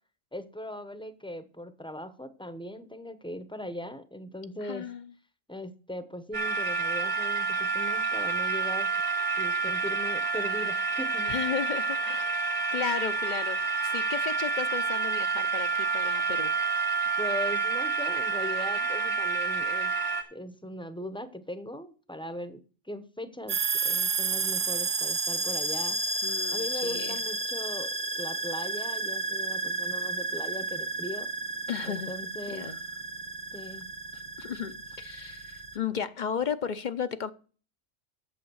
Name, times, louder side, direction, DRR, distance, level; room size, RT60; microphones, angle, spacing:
voice 1, 0.3-4.9 5.5-8.9 9.4-11.3 17.2-19.9 20.3-26.0 26.5-31.3 31.8-32.6 33.5-33.9, left 1 dB, 5° left, 0.7 m, -39 dB
voice 2, 4.6-5.1 11.3-16.5 26.2-27.2 31.7-32.1 32.5-32.8 34.4-37.3, left 7 dB, 45° left, 0.7 m, -34 dB
sound 1, 6.3-20.2, right 4 dB, 65° right, 2.1 m, -28 dB
sound 2, 23.5-35.8, right 3 dB, 40° right, 1.1 m, -32 dB
8.4 x 7.2 x 6.3 m
omnidirectional pair, 1.3 m